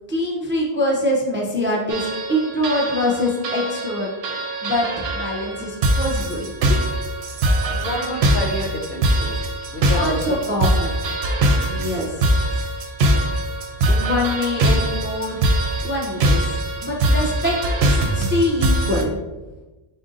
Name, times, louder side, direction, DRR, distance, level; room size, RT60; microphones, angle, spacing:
voice 1, 0.1-4.1 4.6-6.8 7.0-7.1 9.9-10.9 11.7-12.5 13.9-15.4 15.8-16.4 16.8-19.2, left 1 dB, 15° right, -2 dB, 0.4 m, -24 dB
sound 1, 1.9-19.0, right 1 dB, 80° right, 0.8 m, -22 dB
voice 2, 7.7-10.4, left 1 dB, 65° left, 0 dB, 1.0 m, -29 dB
4.2 x 2.5 x 3.8 m, 1.1 s
omnidirectional pair, 1.1 m